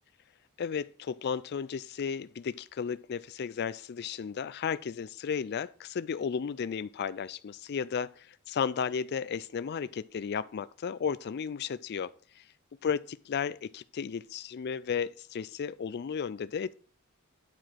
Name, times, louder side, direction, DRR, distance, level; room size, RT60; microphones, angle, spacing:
voice 1, 0.6-12.1 12.8-16.7, left 6 dB, 50° left, 0.4 m, -34 dB
9.3 x 4.9 x 5.8 m
head